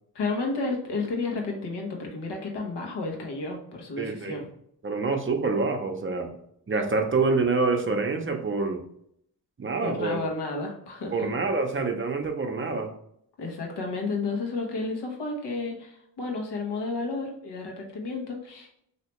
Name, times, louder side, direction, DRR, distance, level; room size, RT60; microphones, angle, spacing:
voice 1, 0.1-4.5 9.8-11.3 13.4-18.8, left 3 dB, 75° left, 1 dB, 1.1 m, -32 dB
voice 2, 4.0-4.4 4.8-6.3 6.7-8.8 9.6-10.1 11.1-12.9, right 3 dB, 30° right, 4 dB, 0.7 m, -26 dB
3.3 x 2.9 x 3.0 m, 0.69 s
cardioid pair, 65°, 41 cm